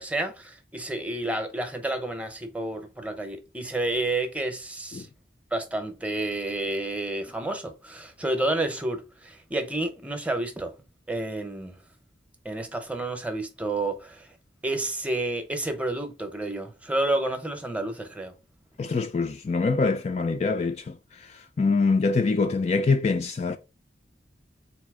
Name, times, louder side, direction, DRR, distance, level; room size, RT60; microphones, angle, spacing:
voice 1, 0.0-5.1 5.5-10.7 11.1-11.8 12.4-14.3 14.6-18.3, right 2 dB, 5° right, 0.7 m, -30 dB
voice 2, 18.8-23.6, left 4 dB, 40° left, 0.3 m, -25 dB
4.1 x 2.7 x 4.8 m
head